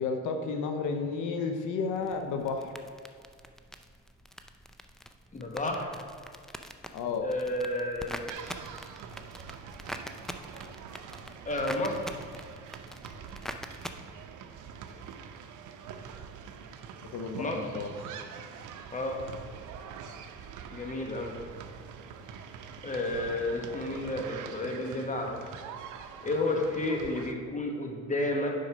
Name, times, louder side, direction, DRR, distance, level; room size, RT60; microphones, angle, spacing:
voice 1, 0.0-2.7 6.9-7.3 17.1-17.9, left 4 dB, 85° left, 5 dB, 0.7 m, -32 dB
sound 1, 1.9-13.9, equal, ahead, 0.4 m, -45 dB
voice 2, 5.3-5.9 7.2-8.2 11.4-12.0 17.4-17.6 18.9-19.2 20.7-21.3 22.8-25.3 26.2-28.5, left 2 dB, 25° left, 2 dB, 1.3 m, -31 dB
sound 2, 8.3-27.3, right 7 dB, 85° right, 0.7 m, -44 dB
7.7 x 5.3 x 5.0 m, 2.1 s
cardioid pair, 90°, 30 cm